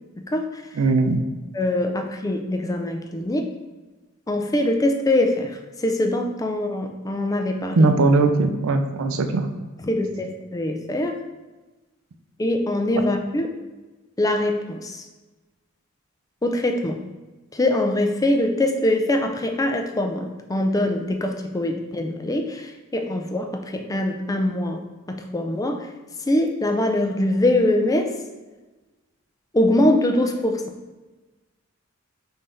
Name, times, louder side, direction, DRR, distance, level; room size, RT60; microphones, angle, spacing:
voice 1, 0.2-0.6 1.5-3.4 4.3-7.9 9.8-11.1 12.4-13.5 14.2-15.0 16.4-17.0 17.5-25.9 26.3-28.1 29.5-30.6, left 1 dB, 15° left, 4 dB, 0.4 m, -23 dB
voice 2, 0.8-1.2 7.8-9.5, right 3 dB, 70° right, 7 dB, 0.4 m, -19 dB
5.4 x 2.7 x 3.4 m, 1.2 s
head